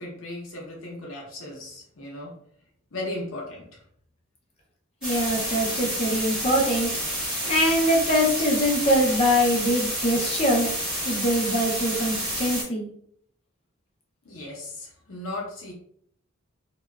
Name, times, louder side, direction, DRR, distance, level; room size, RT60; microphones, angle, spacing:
voice 1, 0.0-2.3 2.9-3.7 14.2-15.7, left 2 dB, 65° left, -3 dB, 0.7 m, -36 dB
voice 2, 5.0-6.9 7.5-10.7 11.0-12.9, equal, 30° left, -1 dB, 0.5 m, -23 dB
sound 1, 5.0-12.6, equal, 5° right, 0.9 m, -29 dB
2.7 x 2.2 x 2.2 m, 0.65 s
head